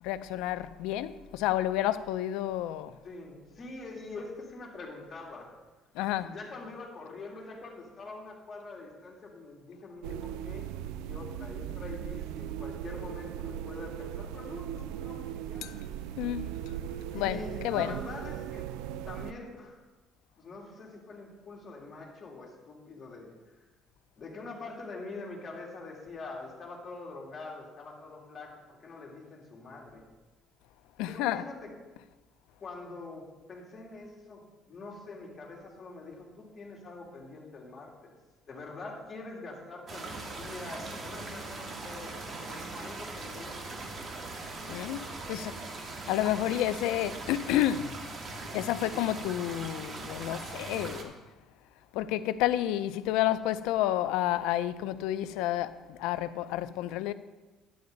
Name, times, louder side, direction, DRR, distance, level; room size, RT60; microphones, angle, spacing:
voice 1, 0.0-3.0 5.9-6.3 15.6-15.8 16.2-16.5 17.1-17.9 31.0-31.4 44.7-47.9 48.5-51.1 51.9-57.1, left 13 dB, 85° left, 0.5 m, -30 dB
voice 2, 3.0-5.5 6.2-15.7 17.0-18.7 19.1-19.8 20.4-23.7 24.2-30.0 31.1-31.7 32.6-38.1 38.5-44.1, left 3 dB, 35° left, 3.1 m, -44 dB
sound 1, 10.0-19.3, right 11 dB, 90° right, 0.4 m, -38 dB
sound 2, 39.9-51.0, right 3 dB, 35° right, 1.7 m, -40 dB
11.5 x 10.0 x 4.0 m
cardioid pair, 110°, 0 cm